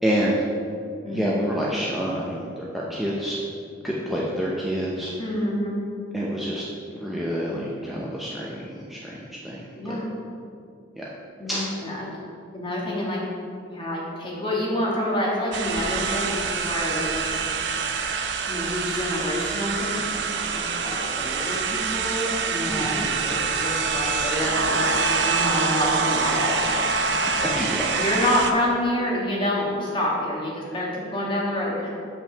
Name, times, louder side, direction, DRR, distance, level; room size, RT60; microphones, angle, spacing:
voice 1, 0.0-0.4 1.1-3.4 3.8-5.1 6.1-6.6 6.9-10.0 11.0-11.1 11.5-11.7 22.7-23.1 27.3-27.9 28.2-28.3, equal, ahead, -6 dB, 0.6 m, -28 dB
voice 2, 5.2-5.9 9.8-10.1 11.4-12.1 12.5-13.2 13.6-17.6 18.5-26.9 28.0-31.9, left 1 dB, 25° left, -4 dB, 1.6 m, -28 dB
sound 1, 15.5-28.5, right 4 dB, 65° right, 0.6 m, -25 dB
5.7 x 5.3 x 6.7 m, 2.5 s
head